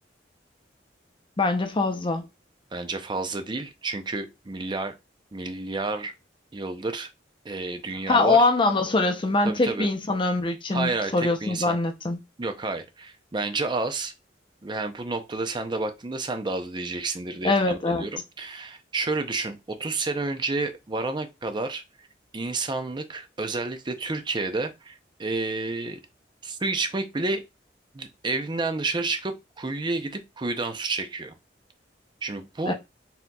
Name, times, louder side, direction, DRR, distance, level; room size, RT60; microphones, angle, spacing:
voice 1, 1.4-2.3 8.1-12.2 17.4-18.1 32.7-32.8, left 3 dB, 30° left, 0.6 m, -23 dB
voice 2, 2.7-4.9 5.3-6.1 6.5-7.1 7.4-8.5 9.5-9.9 10.7-11.8 12.4-14.1 14.6-21.8 22.3-26.0 26.4-27.4 27.9-31.3 32.2-32.7, right 3 dB, 25° right, 0.5 m, -30 dB
4.2 x 3.7 x 2.3 m
head